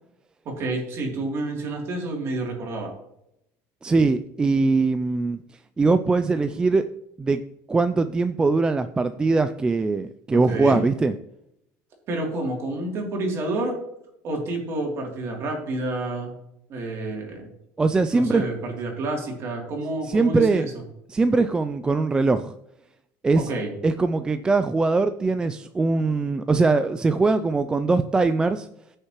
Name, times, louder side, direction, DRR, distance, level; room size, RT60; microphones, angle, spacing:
voice 1, 0.4-2.9 10.3-10.8 12.1-13.7 14.2-16.4 16.7-17.5 18.1-20.7 23.3-23.7, right 2 dB, 40° right, 0 dB, 3.0 m, -29 dB
voice 2, 3.8-5.4 5.8-6.8 7.2-7.4 7.7-11.1 17.8-18.5 20.1-20.7 21.1-22.5 23.2-23.5 23.8-28.7, right 3 dB, 10° right, 10 dB, 0.3 m, -21 dB
15.0 x 6.5 x 3.1 m, 0.81 s
cardioid pair, 155°, 7 cm